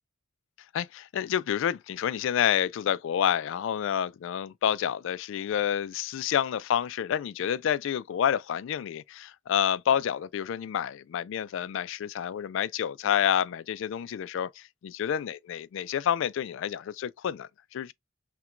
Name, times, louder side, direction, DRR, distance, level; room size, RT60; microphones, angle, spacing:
voice 1, 0.7-17.9, left 9 dB, 70° left, 0.3 m, -29 dB
5.7 x 2.2 x 2.4 m
head